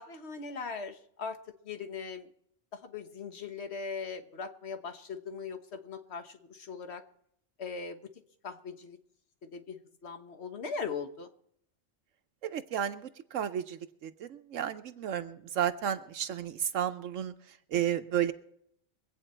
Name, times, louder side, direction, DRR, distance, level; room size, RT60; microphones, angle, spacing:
voice 1, 0.0-1.4 1.6-2.3 2.8-7.0 7.6-8.0 8.4-9.0 9.5-11.3, left 5 dB, 60° left, 7 dB, 1.5 m, -40 dB
voice 2, 12.4-17.3 17.7-18.3, right 10 dB, 80° right, 8 dB, 1.1 m, -32 dB
23.5 x 8.8 x 4.4 m, 0.69 s
omnidirectional pair, 1.3 m